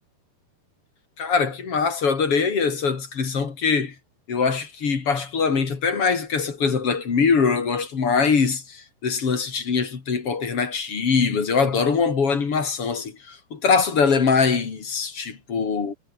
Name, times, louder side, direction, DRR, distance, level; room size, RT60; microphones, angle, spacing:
voice 1, 1.2-3.9 4.3-15.9, left 5 dB, 35° left, 3.5 m, -22 dB
omnidirectional pair, 4.8 m